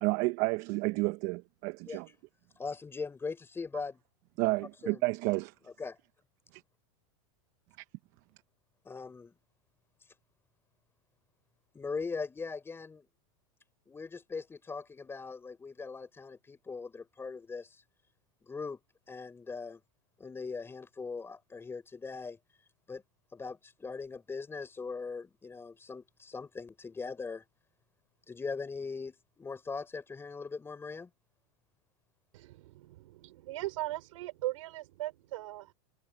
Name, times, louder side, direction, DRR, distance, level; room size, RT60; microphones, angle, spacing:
voice 1, 0.0-2.1 4.4-5.5 7.8-7.9, right 24 dB, 50° right, 1.0 m, -30 dB
voice 2, 2.6-4.0 4.8-5.0 5.8-6.0 8.9-9.3 11.7-13.1 13.9-17.8 18.4-18.8 19.1-19.8 20.2-22.4 22.9-23.0 23.3-27.4 28.3-31.1, left 4 dB, 15° left, 5.7 m, -40 dB
voice 3, 32.3-35.7, right 17 dB, 70° right, 4.4 m, -39 dB
supercardioid pair, 135°, 17 cm